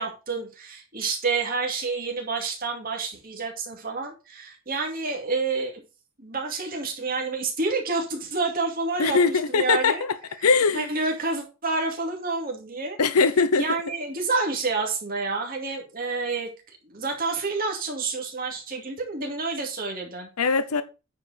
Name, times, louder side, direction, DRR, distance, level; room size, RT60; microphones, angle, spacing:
voice 1, 0.0-5.8 6.2-10.0 10.7-13.0 13.5-20.3, right 3 dB, 40° right, 2.5 m, -29 dB
voice 2, 9.0-10.1 10.4-10.9 13.0-13.7 20.4-20.8, left 4 dB, 90° left, 0.7 m, -21 dB
9.5 x 4.8 x 5.1 m
head